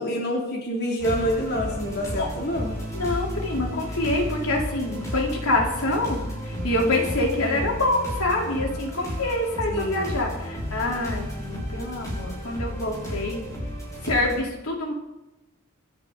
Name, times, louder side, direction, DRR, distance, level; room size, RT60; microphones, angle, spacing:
voice 1, 0.0-2.8 9.7-10.1, equal, 50° left, -2 dB, 3.0 m, -27 dB
sound 1, 1.0-14.4, equal, 15° left, 6.1 m, -33 dB
voice 2, 2.9-13.4 14.0-14.9, left 2 dB, 85° left, -1 dB, 4.0 m, -26 dB
27.0 x 10.5 x 4.1 m, 0.95 s
head